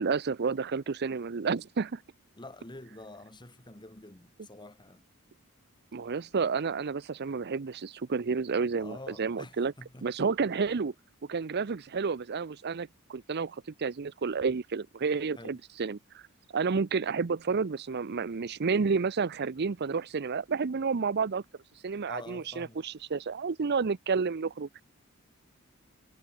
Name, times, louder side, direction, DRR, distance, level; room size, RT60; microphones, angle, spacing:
voice 1, 0.0-2.0 5.9-9.7 10.0-10.9 11.3-16.2 16.5-21.4 21.8-24.7, right 5 dB, 50° right, 0.6 m, -30 dB
voice 2, 2.3-5.1 8.8-10.1 15.4-15.6 22.1-22.8, left 2 dB, 20° left, 3.0 m, -47 dB
head